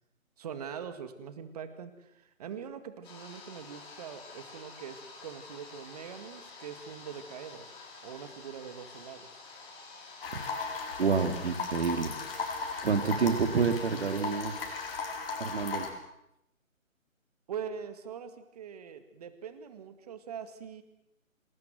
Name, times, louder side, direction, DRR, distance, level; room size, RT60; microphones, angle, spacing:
voice 1, 0.4-7.7 8.0-9.4 17.5-20.8, right 7 dB, 30° right, 10 dB, 2.1 m, -43 dB
sound 1, 3.0-15.0, left 3 dB, 15° left, 4.2 m, -49 dB
sound 2, 10.2-15.9, left 4 dB, 45° left, 5.2 m, -37 dB
voice 2, 11.0-12.1 12.8-14.6 15.4-15.9, right 5 dB, 50° right, 8 dB, 2.9 m, -28 dB
27.0 x 20.0 x 7.8 m, 0.82 s
figure-of-eight pair, 155°, 41 cm